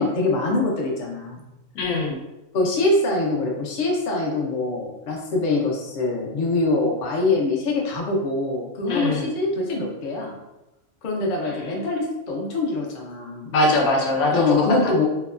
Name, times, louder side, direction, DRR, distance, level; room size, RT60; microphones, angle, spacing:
voice 1, 0.0-1.4 2.5-10.4 11.0-13.5 14.3-15.0, left 2 dB, 60° left, -1 dB, 0.5 m, -24 dB
voice 2, 1.7-2.2 8.8-9.3 11.4-11.7 13.5-15.0, left 2 dB, 85° left, 0 dB, 1.1 m, -22 dB
2.9 x 2.2 x 2.3 m, 0.97 s
omnidirectional pair, 1.4 m